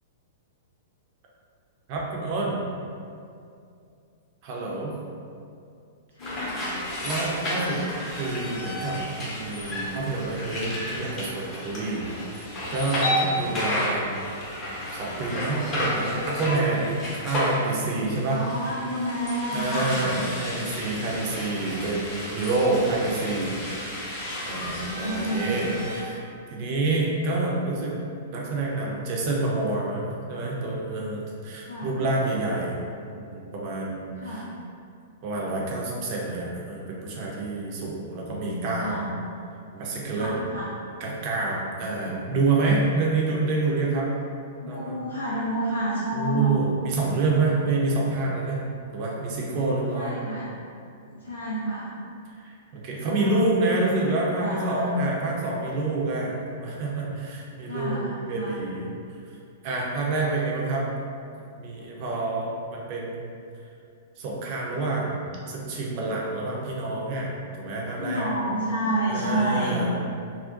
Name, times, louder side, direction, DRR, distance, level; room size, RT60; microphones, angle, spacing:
voice 1, 1.9-2.7 4.4-4.9 6.7-7.8 8.1-14.2 14.9-16.9 17.1-18.4 19.5-23.5 24.1-25.7 26.0-26.2 26.5-28.0 28.3-32.8 33.0-34.4 35.2-39.0 39.7-40.4 41.0-44.1 44.7-45.0 46.1-48.6 48.9-50.1 52.4-58.9 59.6-60.9 61.4-63.3 64.2-68.3 69.1-69.9, right 2 dB, 45° right, -3 dB, 0.5 m, -28 dB
voice 2, 6.2-6.7 11.9-12.1 18.2-20.2 24.6-25.6 31.4-31.9 34.2-34.5 38.1-39.0 40.1-40.7 44.6-46.5 49.9-50.5 51.1-51.9 53.0-53.9 54.4-54.9 57.6-58.6 68.0-69.8, right 1 dB, 80° left, -8 dB, 0.4 m, -30 dB
sound 1, 6.2-26.0, equal, 30° left, 0.7 m, -32 dB
2.4 x 2.1 x 2.4 m, 2.4 s
figure-of-eight pair, 105°, 0 cm